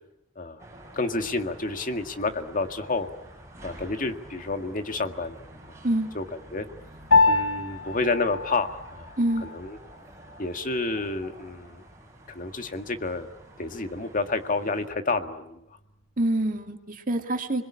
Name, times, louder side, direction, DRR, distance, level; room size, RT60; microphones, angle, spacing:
sound 1, 0.6-14.9, right 1 dB, 15° right, 7.5 m, -48 dB
voice 1, 0.9-3.1 3.6-5.3 6.1-6.2 6.5-6.7 7.3-9.1 9.4-9.8 10.4-11.8 12.3-13.3 13.6-15.6, left 3 dB, 45° left, 7 dB, 1.9 m, -29 dB
Piano, 7.1-16.7, left 3 dB, 90° left, 5.0 m, -29 dB
voice 2, 9.2-9.5 16.2-17.6, right 1 dB, 45° right, 5 dB, 2.3 m, -26 dB
30.0 x 21.5 x 8.7 m, 0.83 s
head